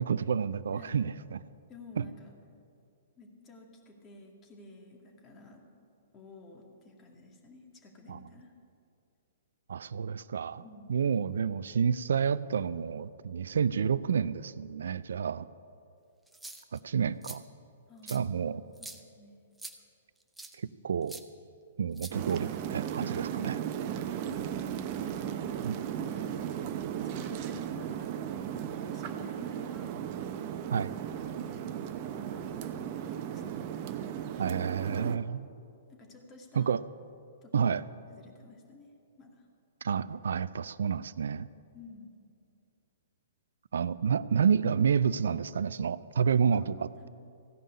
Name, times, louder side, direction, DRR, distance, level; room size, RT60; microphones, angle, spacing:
voice 1, 0.0-1.4 2.0-2.1 8.1-8.2 9.7-10.6 10.9-15.5 16.7-17.4 18.1-18.6 20.8-21.2 21.8-23.6 25.6-25.8 30.7-30.9 34.4-35.5 36.6-36.8 37.5-37.8 39.8-41.5 43.7-47.1, right 7 dB, 70° right, 17 dB, 0.4 m, -29 dB
voice 2, 0.7-1.1 1.7-2.3 3.2-5.6 6.1-8.5 10.6-11.0 17.9-18.5 18.8-19.4 24.2-24.7 25.0-25.2 25.8-26.4 26.9-30.0 30.9-31.7 32.0-33.6 35.9-36.7 37.4-37.9 38.1-38.9 39.2-39.5 41.7-42.1 46.5-47.1, left 2 dB, 25° left, 1 dB, 2.2 m, -52 dB
sound 1, 16.3-16.8 17.2-17.4 18.1-18.2 18.8-19.0 19.6-19.8 20.4-20.6 21.1-21.2 22.0-22.6, right 2 dB, 5° right, 0.8 m, -44 dB
sound 2, 22.1-35.2, right 9 dB, 40° right, 0.7 m, -36 dB
15.5 x 5.5 x 9.6 m, 2.6 s
hypercardioid pair, 120°, 0 cm